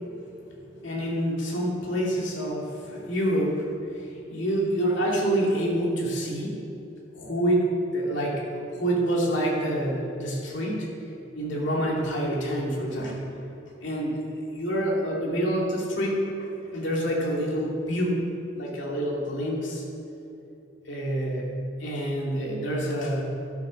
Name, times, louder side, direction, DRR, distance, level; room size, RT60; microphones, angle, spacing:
voice 1, 0.8-6.6 7.1-10.9 11.3-13.2 13.8-18.2 18.6-19.8 20.9-21.5 21.8-23.2, right 1 dB, 70° left, -3 dB, 2.6 m, -27 dB
11.5 x 9.9 x 6.4 m, 2.9 s
head